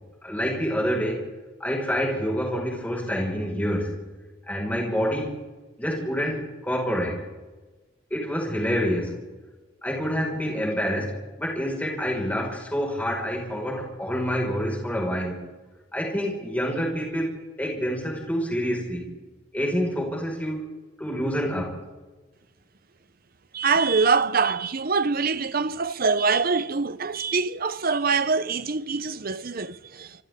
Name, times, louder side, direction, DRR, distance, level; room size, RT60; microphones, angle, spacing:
voice 1, 0.2-1.3 1.6-4.0 4.5-5.4 5.8-7.2 8.1-9.2 9.8-15.5 15.9-19.1 19.5-20.7 21.0-21.8, equal, 10° left, 5.5 m, -27 dB
voice 2, 23.5-30.2, right 4 dB, 50° right, 0.9 m, -24 dB
29.5 x 27.5 x 3.8 m
head